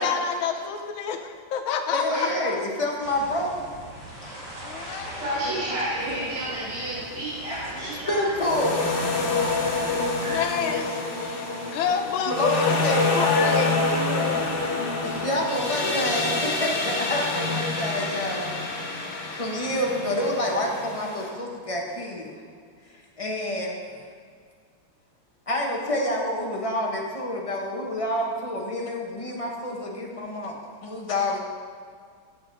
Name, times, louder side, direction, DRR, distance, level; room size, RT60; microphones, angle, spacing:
voice 1, 0.0-2.7 4.2-5.2 5.6-5.7 9.9-14.7 31.1-31.3, left 6 dB, 70° left, 5 dB, 1.5 m, -29 dB
voice 2, 1.9-3.6 5.4-5.5 7.5-8.9 12.2-13.2 15.0-18.5 19.3-22.4 23.2-23.8 25.5-31.4, left 1 dB, 35° left, -1 dB, 0.5 m, -28 dB
sound 1, 3.0-10.4, right 1 dB, 50° right, 2.8 m, -40 dB
voice 3, 5.2-8.3 9.6-10.4, right 1 dB, 75° right, -10 dB, 3.6 m, -31 dB
sound 2, 6.0-7.5 8.4-21.3, left 3 dB, 50° left, 1.7 m, -27 dB
15.0 x 6.6 x 4.0 m, 2.1 s
omnidirectional pair, 2.4 m